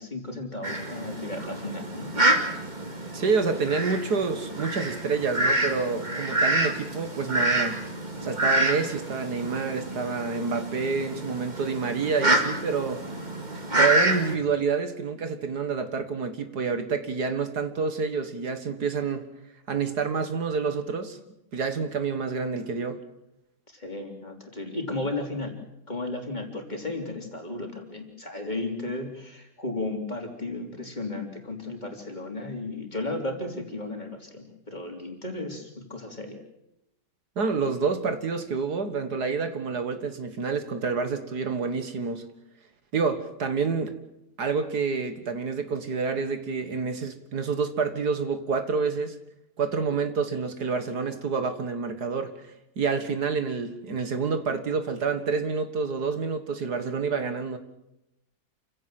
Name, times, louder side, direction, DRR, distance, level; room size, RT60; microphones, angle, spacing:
voice 1, 0.0-2.1 23.7-25.5 25.9-36.4, left 2 dB, 25° left, 3 dB, 3.7 m, -34 dB
Fowl, 0.6-14.3, right 1 dB, 25° right, 2.5 m, -27 dB
voice 2, 3.1-7.8 8.2-13.0 13.7-19.2 19.7-21.2 21.5-23.0 37.4-42.2 42.9-43.9 44.4-49.2 49.6-57.6, right 5 dB, 70° right, 8 dB, 2.2 m, -28 dB
28.5 x 16.5 x 7.7 m, 0.86 s
omnidirectional pair, 1.8 m